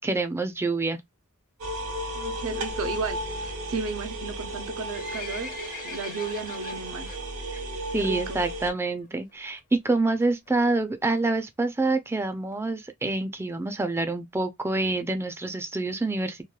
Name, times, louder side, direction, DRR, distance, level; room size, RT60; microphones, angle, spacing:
voice 1, 0.0-1.0 7.5-7.6 7.9-16.4, right 2 dB, 10° right, 0.4 m, -27 dB
sound 1, 1.6-8.7, right 1 dB, 85° right, 1.1 m, -34 dB
voice 2, 2.1-5.6 5.8-7.1 7.9-8.4, right 4 dB, 65° right, 0.5 m, -34 dB
Livestock farm animals working animals, 4.5-7.2 7.6-7.8 8.1-8.2 8.9-9.0 9.3-9.4 9.6-9.7 10.2-10.5 11.1-11.2 11.4-11.5 11.6-11.7 12.0-12.1 12.5-12.6 13.1-13.2 13.6-13.7, left 5 dB, 40° left, 0.6 m, -41 dB
3.0 x 2.2 x 2.2 m
head